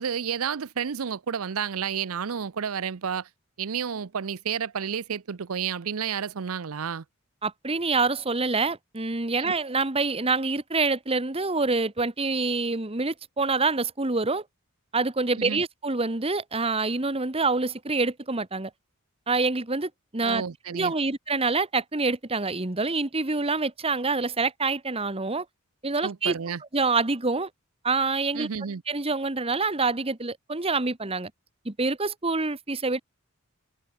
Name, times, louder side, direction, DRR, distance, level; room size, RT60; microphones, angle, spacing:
voice 1, 0.0-3.3 3.6-7.0 9.4-9.5 15.4-15.6 20.2-20.9 26.0-26.6 28.3-28.8, right 7 dB, 75° right, 0.6 m, -31 dB
voice 2, 7.4-14.4 14.9-18.7 19.3-20.4 20.7-25.4 25.8-26.3 26.7-27.5 27.8-28.5 28.9-31.3 31.6-33.0, right 3 dB, 25° right, 1.4 m, -26 dB
open air
head